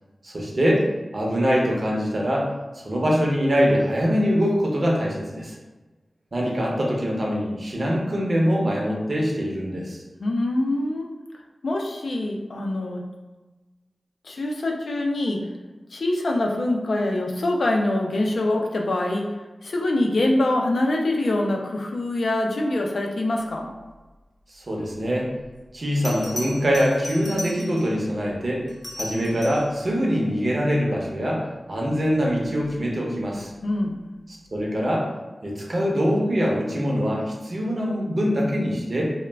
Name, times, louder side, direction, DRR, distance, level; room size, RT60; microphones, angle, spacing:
voice 1, 0.2-0.9 1.1-2.5 2.7-5.6 6.3-10.0 24.5-25.3 25.7-28.6 28.9-33.5 34.5-35.1 35.4-39.1, equal, 50° right, -3 dB, 0.6 m, -23 dB
voice 2, 10.2-11.0 11.6-13.1 14.2-15.5 15.9-19.3 19.6-23.7 33.6-34.0, left 1 dB, 75° left, 1 dB, 0.4 m, -24 dB
Bell, 25.4-25.5 26.0-28.0 28.7-29.8 32.4-32.7, left 1 dB, 35° left, 0.7 m, -36 dB
2.2 x 2.1 x 3.2 m, 1.2 s
wide cardioid pair, 75°, 0 cm